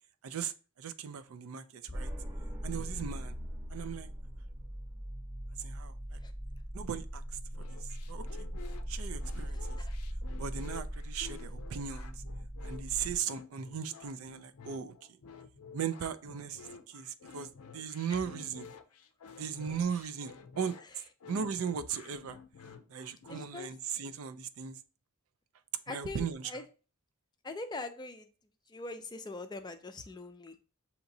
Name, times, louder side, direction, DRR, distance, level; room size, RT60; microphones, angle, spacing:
voice 1, 0.2-2.1 2.6-3.4 3.7-4.1 5.6-6.2 6.7-7.2 7.6-7.8 8.1-8.3 8.9-9.8 10.4-12.2 12.6-14.9 15.7-18.7 19.4-20.7 21.3-22.4 22.9-24.8 25.9-26.6, right 7 dB, 65° right, 11 dB, 0.4 m, -37 dB
sound 1, 1.9-13.2, equal, 15° right, 0.8 m, -40 dB
sound 2, 7.5-23.5, left 5 dB, 85° left, 0.5 m, -51 dB
voice 2, 9.5-9.9 23.3-23.7 25.9-26.6 27.4-28.3 28.7-30.6, left 2 dB, 20° left, 8 dB, 0.4 m, -42 dB
6.9 x 2.9 x 2.7 m, 0.35 s
head